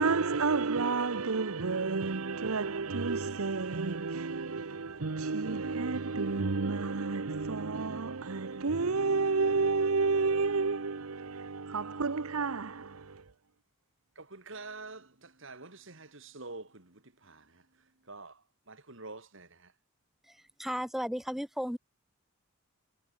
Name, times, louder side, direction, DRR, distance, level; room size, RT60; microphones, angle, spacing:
voice 1, 0.0-13.2, right 4 dB, 85° right, 0.9 m, -30 dB
voice 2, 14.2-17.4 18.1-18.4 18.7-19.5, right 3 dB, 60° right, 3.2 m, -46 dB
voice 3, 20.6-21.8, equal, ahead, 1.2 m, -34 dB
head